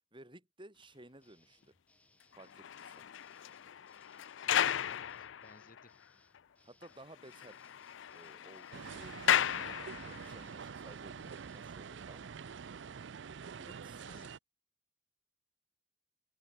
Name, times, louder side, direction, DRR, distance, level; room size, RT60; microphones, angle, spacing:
voice 1, 0.1-1.7 2.3-3.1 6.6-7.6 8.1-9.5 9.9-12.4 13.6-14.3, right 1 dB, 25° right, 6.2 m, -56 dB
sound 1, 1.2-11.7, left 1 dB, 5° left, 4.8 m, -70 dB
sound 2, 2.3-6.0 6.3-6.4 6.8-6.9 7.2-10.4 11.1-11.3, left 10 dB, 80° left, 0.4 m, -35 dB
voice 2, 4.4-6.0 14.0-14.3, left 2 dB, 45° left, 5.6 m, -60 dB
sound 3, 8.7-14.4, right 6 dB, 70° right, 0.5 m, -46 dB
open air
head